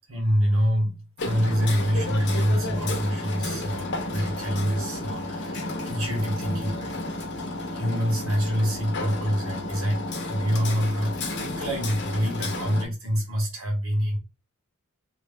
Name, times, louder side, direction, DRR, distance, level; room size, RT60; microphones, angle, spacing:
voice 1, 0.1-7.0 7.6-14.2, equal, 85° right, 1.6 m, -26 dB
Hammer, 1.2-12.8, left 2 dB, 55° left, 0.9 m, -32 dB
3.0 x 2.7 x 3.6 m
head